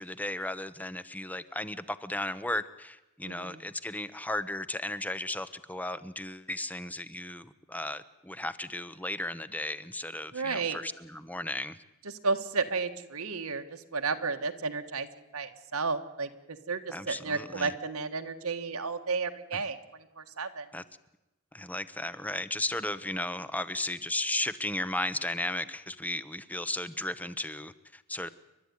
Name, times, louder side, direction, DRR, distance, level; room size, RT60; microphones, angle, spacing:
voice 1, 0.0-11.8 16.9-17.7 19.5-19.6 20.7-20.8 21.5-28.3, left 1 dB, 5° left, 14 dB, 0.8 m, -35 dB
voice 2, 3.2-3.6 10.3-10.8 12.0-15.1 15.3-20.7, right 4 dB, 85° right, 6 dB, 1.6 m, -33 dB
29.5 x 12.0 x 9.6 m, 0.99 s
head